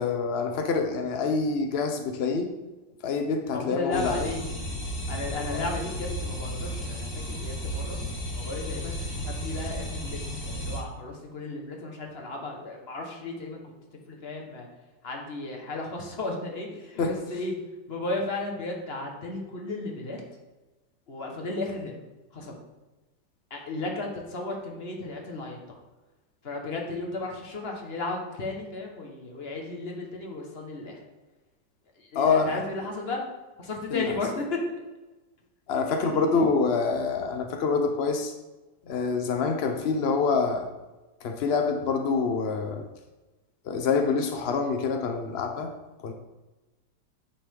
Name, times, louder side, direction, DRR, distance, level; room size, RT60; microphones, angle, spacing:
voice 1, 0.0-2.5 3.0-4.3 5.5-5.7 17.0-17.2 32.1-32.6 33.9-34.1 35.7-38.3 38.9-40.7 41.2-42.9 43.7-45.7 46.0-46.1, left 4 dB, 80° left, 5 dB, 0.5 m, -26 dB
voice 2, 3.5-4.4 5.1-8.0 8.3-13.6 14.1-14.7 15.0-17.5 17.9-20.2 21.1-21.9 22.3-22.5 23.5-25.8 26.4-31.0 32.0-33.2 33.6-34.6 35.9-36.4, left 2 dB, 35° left, 1 dB, 1.5 m, -34 dB
sound 1, 3.9-10.8, equal, 50° left, 2.4 m, -34 dB
8.9 x 6.7 x 3.8 m, 1.1 s
omnidirectional pair, 2.1 m